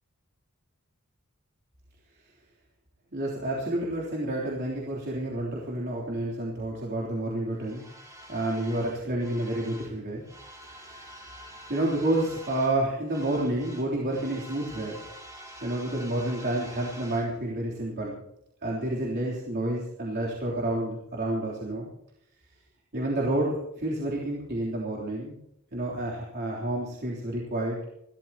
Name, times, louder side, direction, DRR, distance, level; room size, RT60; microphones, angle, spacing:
voice 1, 3.1-7.9 8.3-10.2 10.7-11.1 11.7-15.0 15.6-18.2 18.6-21.9 22.9-25.4 25.7-27.8, right 1 dB, 50° right, -5 dB, 3.5 m, -29 dB
sound 1, 7.6-10.0 10.2-12.8 13.1-17.3, equal, 15° right, 2.9 m, -47 dB
29.0 x 13.0 x 3.0 m, 0.78 s
head